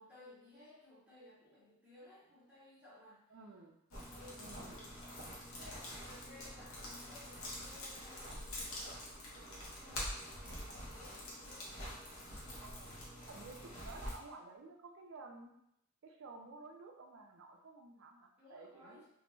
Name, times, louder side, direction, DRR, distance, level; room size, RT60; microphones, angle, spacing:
voice 1, 0.0-3.2 3.9-4.9 5.5-12.0 18.4-19.1, left 1 dB, 5° right, -10 dB, 0.7 m, -59 dB
voice 2, 3.3-3.8 4.4-4.8 12.6-13.0 13.3-15.5 16.0-19.1, right 3 dB, 55° right, 3 dB, 0.3 m, -53 dB
sound 1, 3.9-14.2, left 1 dB, 75° left, 0.7 m, -46 dB
2.2 x 2.1 x 3.1 m, 0.79 s
head